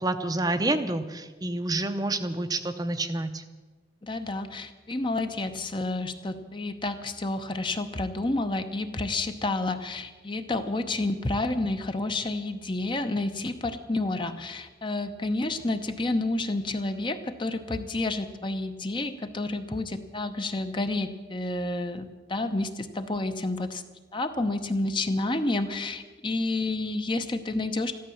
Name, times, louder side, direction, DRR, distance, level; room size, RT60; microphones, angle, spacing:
voice 1, 0.0-3.4, right 2 dB, 20° right, 8 dB, 0.7 m, -28 dB
voice 2, 4.0-23.8 24.1-28.0, left 2 dB, 25° left, 8 dB, 0.8 m, -30 dB
14.0 x 12.5 x 7.1 m, 1.3 s
head